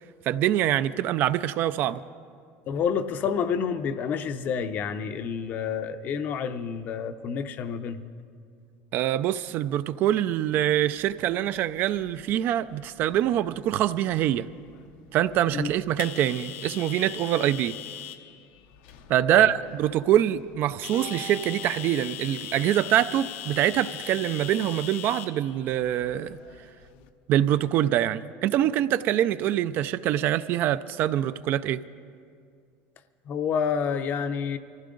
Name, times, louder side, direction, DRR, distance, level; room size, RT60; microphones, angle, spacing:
voice 1, 0.2-2.0 8.9-14.5 15.1-17.8 19.1-26.4 27.3-31.8, right 12 dB, 45° right, 14 dB, 0.3 m, -24 dB
voice 2, 2.7-8.0 15.5-15.7 19.3-19.5 33.3-34.6, left 6 dB, 35° left, 10 dB, 0.6 m, -29 dB
sound 1, 11.0-27.1, left 12 dB, 85° left, 0.8 m, -42 dB
Bowed string instrument, 20.9-24.3, right 7 dB, 80° right, 2.2 m, -45 dB
24.0 x 15.0 x 3.8 m, 2.3 s
cardioid pair, 165°, 5 cm